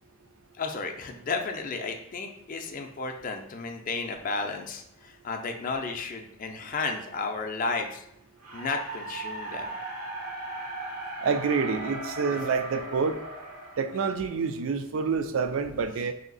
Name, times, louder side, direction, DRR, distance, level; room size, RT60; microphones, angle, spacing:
voice 1, 0.6-8.0 8.5-9.7 12.3-12.4, left 4 dB, 40° left, 4 dB, 0.4 m, -33 dB
sound 1, 8.4-14.6, right 2 dB, 90° right, 0.9 m, -38 dB
voice 2, 11.2-13.2 13.8-16.1, right 5 dB, 65° right, 9 dB, 0.4 m, -27 dB
3.2 x 2.7 x 3.9 m, 0.76 s
head